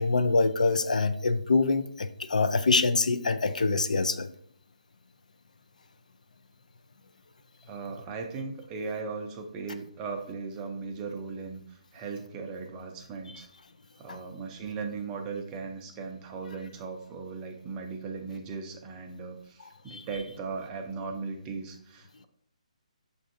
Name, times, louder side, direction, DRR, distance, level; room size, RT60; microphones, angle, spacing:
voice 1, 0.0-4.3 14.1-14.2 19.9-20.0, left 3 dB, 85° left, 10 dB, 0.4 m, -25 dB
voice 2, 7.6-13.5 14.0-22.3, right 4 dB, 15° right, 3 dB, 0.4 m, -38 dB
6.7 x 2.6 x 2.5 m, 0.66 s
hypercardioid pair, 160°, 4 cm